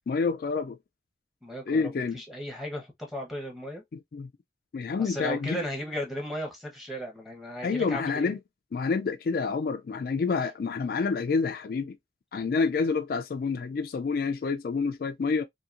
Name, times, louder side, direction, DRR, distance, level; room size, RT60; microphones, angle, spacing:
voice 1, 0.1-0.8 1.7-2.2 3.9-4.3 4.7-5.6 7.6-8.4 8.7-12.0 12.3-15.4, left 4 dB, 55° left, 0.3 m, -28 dB
voice 2, 1.4-3.8 5.0-8.4, equal, ahead, 0.8 m, -36 dB
2.8 x 2.7 x 2.4 m
head